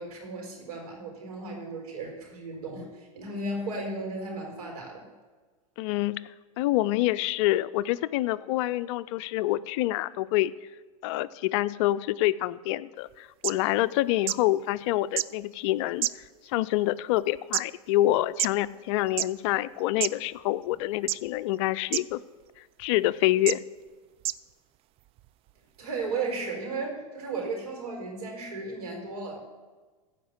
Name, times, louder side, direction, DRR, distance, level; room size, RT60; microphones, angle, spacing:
voice 1, 0.0-5.1 25.8-29.4, right 3 dB, 80° right, 1 dB, 4.2 m, -35 dB
voice 2, 5.8-6.3 6.6-10.5 11.0-16.1 16.4-22.2 22.8-23.6, left 15 dB, 55° left, 16 dB, 0.5 m, -26 dB
sound 1, 13.1-13.2 13.4-13.5 14.3-14.4 15.2-15.3 16.0-16.5 17.2-17.6 18.4-18.5 19.1-19.3 20.0-20.1 21.1-21.4 21.9-22.0 22.8-22.9 23.5-23.6 24.2-24.4 25.2-25.3, right 14 dB, 30° right, 0.3 m, -27 dB
15.0 x 5.2 x 8.0 m, 1.3 s
hypercardioid pair, 110°, 19 cm